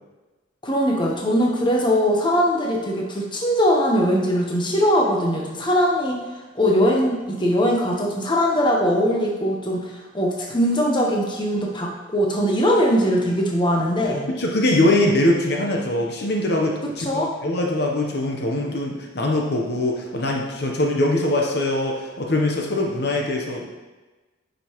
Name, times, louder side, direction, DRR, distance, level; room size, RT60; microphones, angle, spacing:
voice 1, 0.6-6.2 6.5-14.3 17.0-17.3, equal, 25° left, -1 dB, 0.9 m, -21 dB
voice 2, 14.3-23.6, left 1 dB, 55° left, 0 dB, 0.8 m, -22 dB
9.2 x 5.2 x 3.0 m, 1.2 s
head